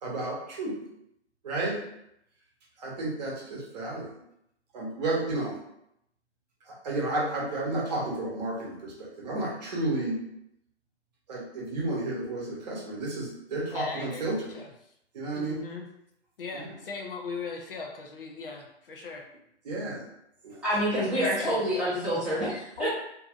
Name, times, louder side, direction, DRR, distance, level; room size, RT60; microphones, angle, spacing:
voice 1, 0.0-0.8 1.4-1.8 2.8-4.2 4.7-5.5 6.8-10.2 11.3-14.6 15.1-15.6 16.5-16.7 19.6-20.0 20.4-20.6, right 2 dB, 40° right, -5 dB, 0.9 m, -32 dB
voice 2, 13.7-14.7 15.4-15.9 16.4-19.2 21.1-21.6 22.8-22.9, left 4 dB, 55° left, 2 dB, 0.5 m, -38 dB
voice 3, 20.6-22.9, equal, 5° right, -12 dB, 0.8 m, -27 dB
2.6 x 2.5 x 2.4 m, 0.78 s
figure-of-eight pair, 135°, 34 cm